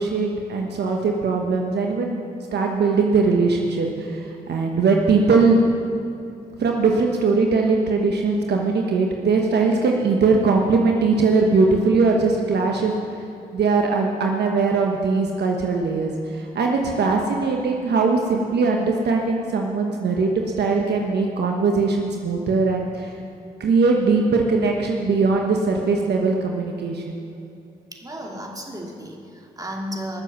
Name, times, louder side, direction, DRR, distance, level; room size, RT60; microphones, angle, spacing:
voice 1, 0.0-2.2 2.5-5.6 6.6-12.9 13.5-20.3 20.6-23.1 23.6-27.2, right 4 dB, 65° right, 1 dB, 1.2 m, -20 dB
voice 2, 27.9-30.2, equal, 20° right, 0 dB, 2.6 m, -34 dB
19.5 x 7.3 x 6.0 m, 2.7 s
supercardioid pair, 50°, 18 cm